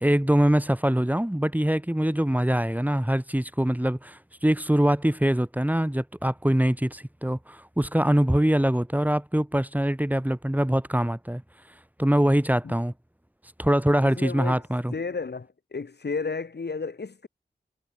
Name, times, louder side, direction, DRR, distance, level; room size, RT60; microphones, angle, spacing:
voice 1, 0.0-11.4 12.0-12.9 13.6-14.9, equal, 10° right, 2.5 m, -23 dB
voice 2, 14.0-14.6 14.9-17.3, left 4 dB, 70° left, 3.2 m, -33 dB
cardioid pair, 40°, 18 cm